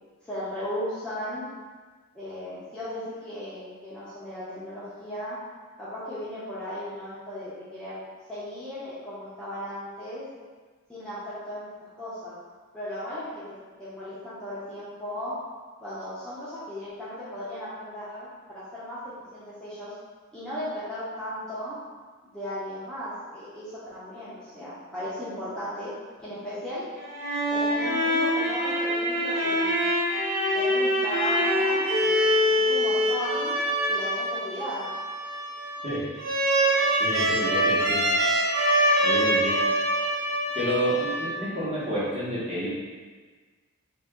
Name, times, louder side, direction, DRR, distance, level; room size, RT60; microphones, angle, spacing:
voice 1, 0.2-1.4 2.1-5.4 5.8-8.0 8.3-10.2 10.9-12.4 12.7-15.3 15.8-19.9 20.3-21.8 22.2-25.9 26.2-26.8 27.5-29.9 30.5-32.3 32.6-33.6 33.9-34.9, equal, 5° left, -12 dB, 0.6 m, -36 dB
sound 1, 27.0-41.6, equal, 50° right, 0.7 m, -25 dB
voice 2, 37.0-38.0 39.0-39.6 40.5-42.7, equal, 30° right, -10 dB, 1.2 m, -29 dB
2.8 x 2.7 x 3.5 m, 1.4 s
head